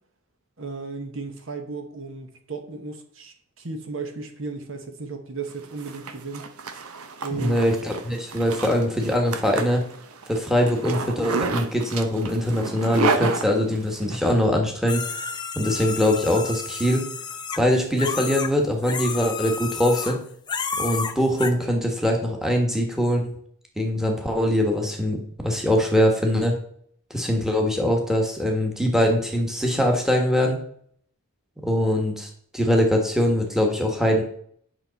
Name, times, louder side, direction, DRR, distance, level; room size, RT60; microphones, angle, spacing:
voice 1, 0.6-6.4 7.2-7.7, right 4 dB, 60° right, 6 dB, 1.1 m, -35 dB
Zipper (clothing), 5.5-14.2, right 4 dB, 85° right, 0.8 m, -31 dB
voice 2, 7.3-9.8 10.3-15.0 15.5-17.1 17.6-20.2 20.8-23.3 23.8-26.5 27.1-30.6 31.6-34.2, equal, ahead, 1 dB, 1.3 m, -22 dB
sound 1, 14.9-18.5 18.8-20.2 20.5-21.5, left 5 dB, 20° left, 0.5 m, -31 dB
9.1 x 6.0 x 4.0 m, 0.63 s
head